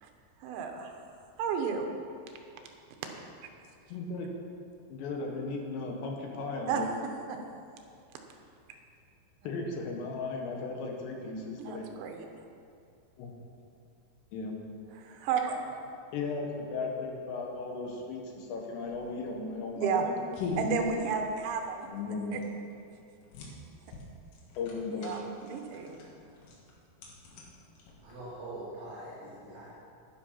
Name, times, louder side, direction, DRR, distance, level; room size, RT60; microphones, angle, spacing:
voice 1, 0.4-1.0 1.4-1.9 6.7-6.8 7.3-7.4 11.6-12.3 15.0-15.7 19.8-20.1 20.6-21.9 22.3-22.4 25.0-26.0, right 6 dB, 75° right, 4 dB, 3.3 m, -32 dB
voice 2, 3.9-4.3 4.9-6.9 9.5-11.9 13.2-13.4 14.3-14.5 16.1-20.2 21.9-22.4 24.6-25.1, left 3 dB, 70° left, 0 dB, 3.5 m, -36 dB
sound 1, 18.8-28.4, left 3 dB, 90° left, 4.5 m, -43 dB
voice 3, 28.0-29.7, right 1 dB, 45° right, -9 dB, 3.3 m, -43 dB
11.5 x 10.5 x 5.9 m, 2.5 s
omnidirectional pair, 5.5 m